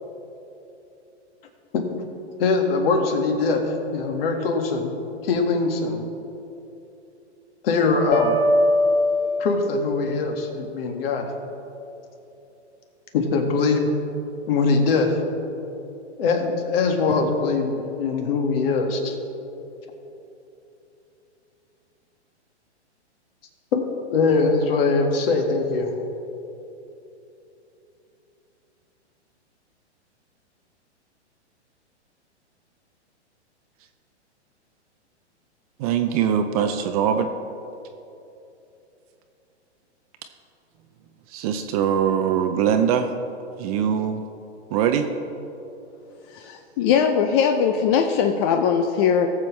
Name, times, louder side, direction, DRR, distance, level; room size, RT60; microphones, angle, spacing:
voice 1, 2.4-4.9 5.2-6.0 7.6-8.4 9.4-11.3 13.1-13.9 14.5-15.2 16.2-19.2 23.7-23.8 24.1-25.9, left 4 dB, 55° left, 3 dB, 1.8 m, -22 dB
sound 1, 8.1-10.0, left 1 dB, 80° left, 1.6 m, -21 dB
voice 2, 35.8-37.3 41.3-43.1 43.6-44.2 44.7-45.1, right 8 dB, 35° right, 6 dB, 0.6 m, -22 dB
voice 3, 46.3-49.3, left 7 dB, 25° left, 4 dB, 0.4 m, -20 dB
19.0 x 7.4 x 3.2 m, 2.9 s
hypercardioid pair, 130°, 35 cm